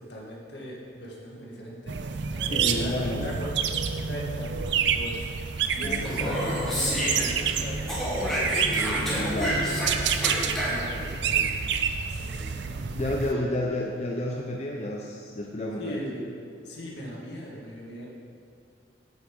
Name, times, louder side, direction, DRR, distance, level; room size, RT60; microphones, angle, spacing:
voice 1, 0.0-3.5 3.9-5.3 5.7-9.3 9.6-10.0 10.4-11.6 12.1-14.1 15.8-16.3 16.6-18.1, equal, 70° left, -3 dB, 2.0 m, -39 dB
sound 1, 1.9-13.3, right 6 dB, 75° right, 0.5 m, -29 dB
voice 2, 2.5-3.4 5.8-6.6 8.7-9.8 12.9-16.0, left 1 dB, 35° left, -1 dB, 0.7 m, -31 dB
Speech, 5.9-7.6 7.9-11.0, equal, ahead, 1.9 m, -29 dB
8.1 x 8.1 x 5.3 m, 2.4 s
head